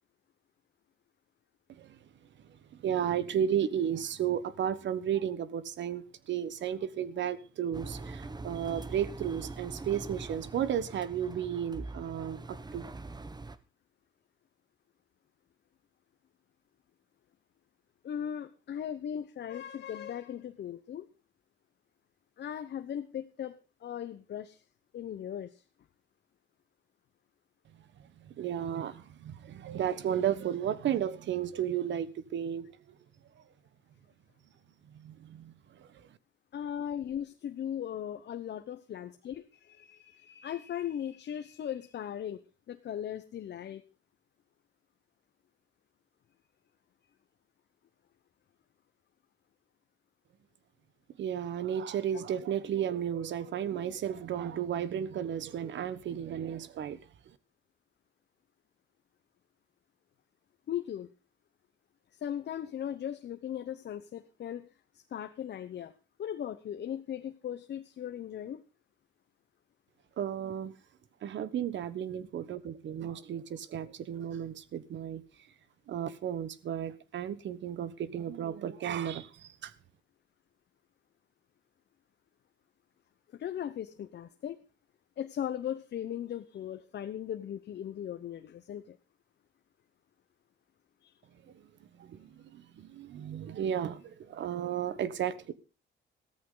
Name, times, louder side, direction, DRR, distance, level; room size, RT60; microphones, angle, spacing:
voice 1, 2.5-12.9 28.0-33.0 34.9-36.1 51.2-57.0 57.3-57.4 70.2-70.8 71.2-75.2 75.9-79.7 91.5-91.7 92.0-95.5, right 9 dB, 65° right, 1.2 m, -34 dB
Engine, 7.7-13.6, right 3 dB, 20° right, 1.1 m, -43 dB
voice 2, 18.0-21.1 22.4-24.6 24.9-25.6 36.5-43.8 60.7-61.1 62.1-64.7 64.9-65.9 66.2-68.6 83.3-84.6 85.2-89.0 91.0-91.2, left 10 dB, 60° left, 1.0 m, -38 dB
15.0 x 13.5 x 3.9 m
cardioid pair, 90°, 20 cm